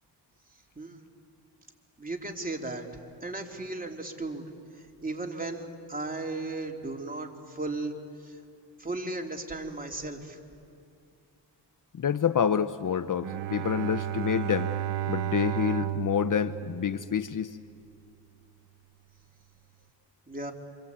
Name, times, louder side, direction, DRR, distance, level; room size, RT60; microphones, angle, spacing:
voice 1, 2.0-2.9 3.2-4.5 5.0-8.0 8.2-8.4 8.8-10.4 20.3-20.5, right 2 dB, 20° right, 2 dB, 3.5 m, -35 dB
voice 2, 11.9-14.7 15.1-17.6, left 8 dB, 45° left, 13 dB, 0.8 m, -28 dB
Bowed string instrument, 13.2-17.6, right 12 dB, 80° right, 1.1 m, -33 dB
27.5 x 25.0 x 8.7 m, 2.4 s
cardioid pair, 55°, 42 cm